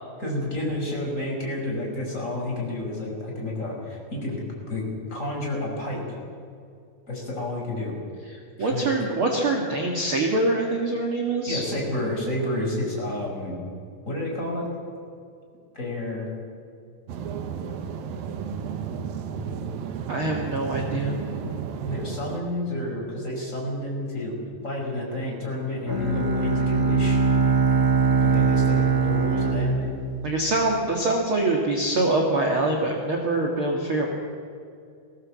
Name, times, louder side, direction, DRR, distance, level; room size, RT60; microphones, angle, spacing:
voice 1, 0.2-4.4 4.7-6.2 7.1-7.9 8.6-8.9 11.5-13.6 14.1-14.7 15.7-16.3 21.8-24.3 24.6-27.2 28.2-29.9, left 1 dB, 20° left, -2 dB, 5.4 m, -30 dB
voice 2, 8.6-11.6 20.1-21.2 30.2-34.1, right 2 dB, 45° right, 0 dB, 2.2 m, -24 dB
sound 1, 17.1-22.4, right 6 dB, 80° right, 2.9 m, -32 dB
Bowed string instrument, 25.9-30.9, right 4 dB, 10° right, 1.4 m, -22 dB
20.5 x 17.5 x 7.5 m, 2.4 s
omnidirectional pair, 4.0 m